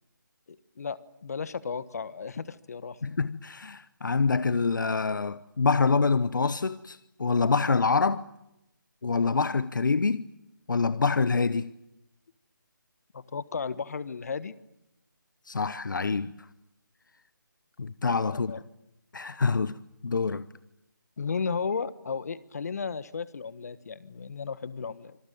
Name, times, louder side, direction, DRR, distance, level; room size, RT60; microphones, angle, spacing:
voice 1, 0.5-3.0 13.1-14.5 18.3-18.6 21.2-25.2, left 5 dB, 50° left, 1.4 m, -34 dB
voice 2, 3.0-8.2 9.0-10.3 10.7-11.7 15.5-16.5 17.8-18.5 19.1-20.4, left 4 dB, 70° left, 1.0 m, -26 dB
26.0 x 20.0 x 9.3 m
figure-of-eight pair, 165°, 11 cm